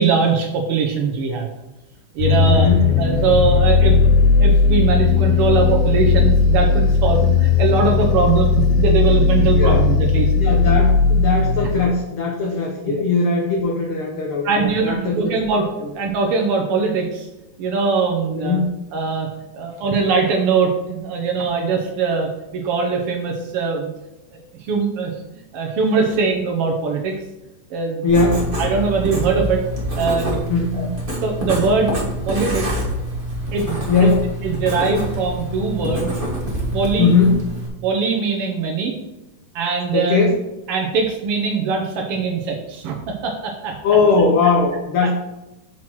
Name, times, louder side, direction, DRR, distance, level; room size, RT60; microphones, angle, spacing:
voice 1, 0.0-1.5 2.1-2.7 3.0-4.1 4.4-10.3 12.9-13.0 14.4-15.7 15.9-17.3 17.6-18.6 18.9-19.3 19.5-23.9 24.6-25.1 25.5-27.2 27.7-28.0 28.6-29.7 30.0-30.4 30.7-30.9 31.2-32.0 32.2-32.8 33.5-34.1 34.4-36.1 36.7-37.1 37.8-39.0 39.5-40.2 40.7-43.8 45.0-45.1, right 4 dB, 85° right, 1 dB, 1.2 m, -21 dB
sound 1, 2.2-11.9, left 5 dB, 70° left, 1.7 m, -16 dB
voice 2, 2.4-2.8 9.6-9.8 10.4-15.3 15.8-15.9 18.3-18.7 28.0-28.4 30.5-30.9 33.9-34.2 34.9-35.0 37.0-37.4 39.9-40.3 43.8-45.1, left 4 dB, 85° left, 0 dB, 1.2 m, -19 dB
Writing, 28.1-37.7, equal, 40° right, 0.7 m, -26 dB
5.9 x 4.6 x 6.0 m, 0.99 s
omnidirectional pair, 3.7 m